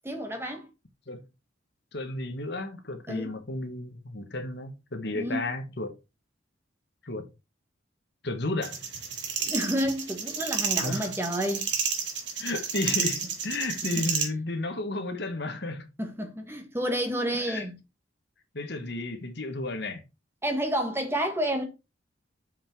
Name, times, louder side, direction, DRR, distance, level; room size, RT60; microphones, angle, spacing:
voice 1, 0.0-0.7 3.1-3.3 5.1-5.5 9.4-11.7 14.0-14.1 16.0-17.8 20.4-21.6, equal, 15° right, 1.7 m, -30 dB
voice 2, 1.9-6.0 7.0-7.2 8.2-8.8 10.8-11.1 12.4-15.9 17.3-17.6 18.5-20.0, left 2 dB, 60° left, 1.6 m, -33 dB
sound 1, 8.6-14.3, right 6 dB, 65° right, 2.3 m, -30 dB
7.0 x 5.8 x 4.6 m
head